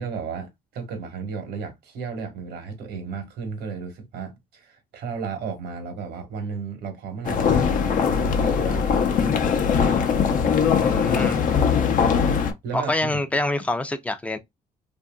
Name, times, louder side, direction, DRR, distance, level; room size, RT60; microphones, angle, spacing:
voice 1, 0.0-9.0 10.9-11.1 12.6-13.2, right 5 dB, 75° right, 1.2 m, -34 dB
sound 1, 7.2-12.5, left 6 dB, 50° left, 0.7 m, -21 dB
voice 2, 10.8-11.4 12.7-14.4, left 1 dB, 10° left, 0.5 m, -26 dB
2.8 x 2.6 x 2.2 m
cardioid pair, 110°, 17 cm